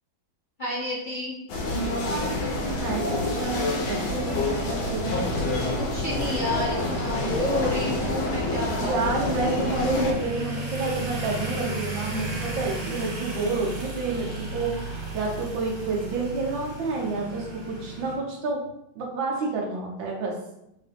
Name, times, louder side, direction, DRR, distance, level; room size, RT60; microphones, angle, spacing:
voice 1, 0.6-1.3 5.8-9.0 9.9-10.0, left 1 dB, 55° left, -6 dB, 0.5 m, -30 dB
sound 1, 1.5-10.1, left 2 dB, 80° left, 1.6 m, -27 dB
sound 2, 2.3-18.2, right 1 dB, 35° right, 0.9 m, -36 dB
voice 2, 2.8-5.2 8.7-18.7 18.9-20.3, right 3 dB, 75° right, -2 dB, 1.7 m, -29 dB
3.9 x 3.5 x 3.4 m, 0.83 s
omnidirectional pair, 2.1 m